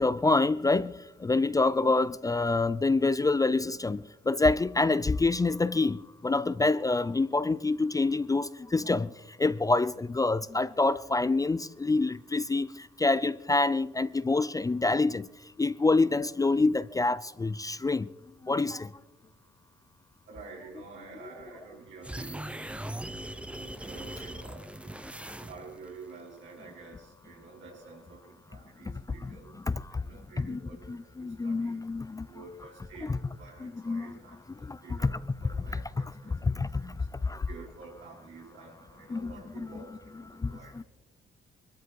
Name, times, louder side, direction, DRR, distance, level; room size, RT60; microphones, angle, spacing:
voice 1, 0.0-9.1 9.4-15.3 15.6-18.1 18.4-18.9 29.2-29.3 29.9-30.0 30.4-30.6 30.9-32.3 33.1-33.2 33.6-34.1 34.6-35.1 35.7-35.8 36.3-36.9 37.2-37.5 39.1-39.8 40.4-40.8, left 3 dB, 15° left, 0.5 m, -27 dB
voice 2, 20.3-22.7 23.5-25.0 25.4-31.8 32.2-37.1 37.5-40.8, right 4 dB, 75° right, 5.7 m, -49 dB
sound 1, 22.0-25.9, right 1 dB, 5° right, 0.8 m, -40 dB
22.0 x 13.0 x 4.7 m
cardioid pair, 90°, 20 cm